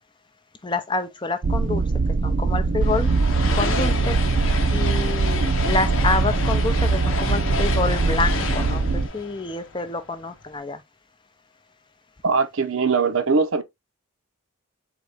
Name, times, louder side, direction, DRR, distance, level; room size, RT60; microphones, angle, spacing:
voice 1, 0.6-1.8 2.2-3.1 3.5-4.2 4.7-10.8, left 3 dB, 20° left, 0.5 m, -27 dB
sound 1, 1.4-9.1, right 4 dB, 40° right, 0.3 m, -22 dB
sound 2, 2.8-10.2, left 4 dB, 70° left, 0.8 m, -30 dB
voice 2, 12.2-13.6, right 4 dB, 65° right, 0.7 m, -21 dB
4.0 x 3.6 x 3.3 m
head